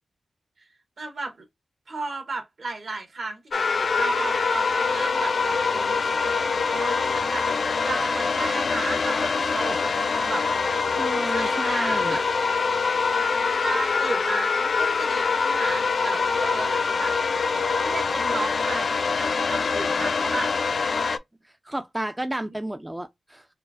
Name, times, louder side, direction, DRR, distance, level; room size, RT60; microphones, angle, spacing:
voice 1, 1.0-1.4 1.9-10.5 11.3-12.2 13.1-17.5 17.8-20.5, right 3 dB, 65° right, 1.4 m, -34 dB
sound 1, 3.5-21.2, left 5 dB, 60° left, 0.4 m, -24 dB
voice 2, 11.0-12.2 21.4-23.5, right 1 dB, 15° right, 0.3 m, -32 dB
4.4 x 2.4 x 2.4 m
wide cardioid pair, 95°, 0 cm